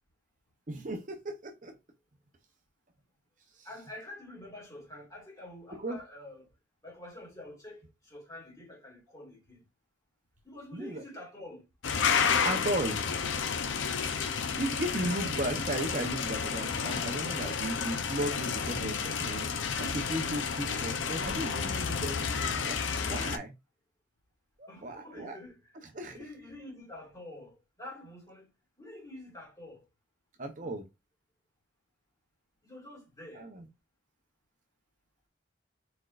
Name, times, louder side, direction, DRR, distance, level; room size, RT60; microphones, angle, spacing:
voice 1, 0.7-1.7 3.6-3.7 5.8-6.0 10.7-11.0 12.4-13.0 14.6-19.5 19.8-22.8 23.1-23.5 24.6-25.4 25.9-26.2 30.4-30.8 33.3-33.7, right 1 dB, 40° right, 0.7 m, -35 dB
voice 2, 3.6-6.5 6.8-9.6 10.4-11.7 24.7-28.5 28.8-29.8 32.6-33.5, left 1 dB, 15° left, 2.0 m, -47 dB
sound 1, 11.8-23.4, left 6 dB, 80° left, 0.6 m, -31 dB
4.3 x 4.3 x 2.4 m
head